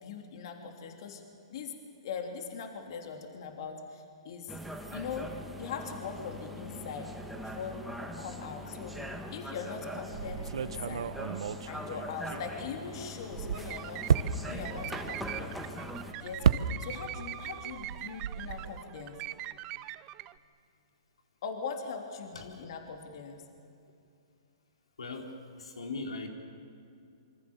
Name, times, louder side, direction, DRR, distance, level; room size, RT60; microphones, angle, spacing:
voice 1, 0.0-1.2 1.5-1.7 2.0-4.6 4.9-5.3 5.6-7.1 7.4-9.0 9.3-11.2 11.7-14.0 14.4-15.6 16.1-19.2 21.4-23.4, left 6 dB, 55° left, 4 dB, 3.3 m, -41 dB
sound 1, 4.5-16.1, equal, ahead, 1.7 m, -42 dB
sound 2, 10.1-12.8 13.2-17.2 17.5-18.8, right 7 dB, 70° right, 1.0 m, -32 dB
sound 3, 13.5-20.3, right 15 dB, 30° right, 0.7 m, -42 dB
voice 2, 25.0-26.3, left 3 dB, 90° left, 3 dB, 4.5 m, -39 dB
26.5 x 25.0 x 7.2 m, 2.6 s
hypercardioid pair, 140°, 3 cm